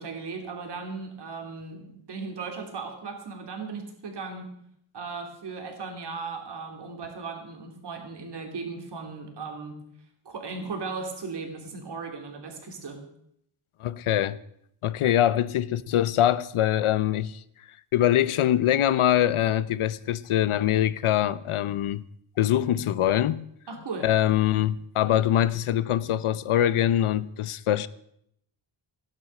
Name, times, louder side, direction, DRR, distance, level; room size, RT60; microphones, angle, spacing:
voice 1, 0.0-4.5 4.9-9.8 10.2-13.0 23.7-24.1, right 4 dB, 55° right, 3.2 m, -37 dB
voice 2, 13.8-14.4 14.8-17.4 17.9-22.0 22.4-23.4 24.0-27.9, left 11 dB, 85° left, 0.8 m, -23 dB
16.5 x 11.0 x 6.6 m
wide cardioid pair, 165°, 49 cm